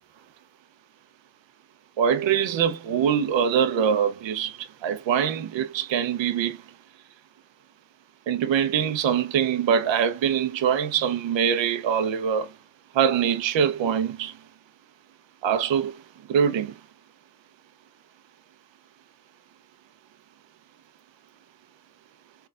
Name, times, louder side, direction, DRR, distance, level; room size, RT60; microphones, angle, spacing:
voice 1, 2.0-6.6 8.3-12.5 12.9-14.3 15.4-15.9 16.3-16.7, right 8 dB, 65° right, 0.8 m, -23 dB
4.4 x 3.2 x 2.4 m
supercardioid pair, 45°, 49 cm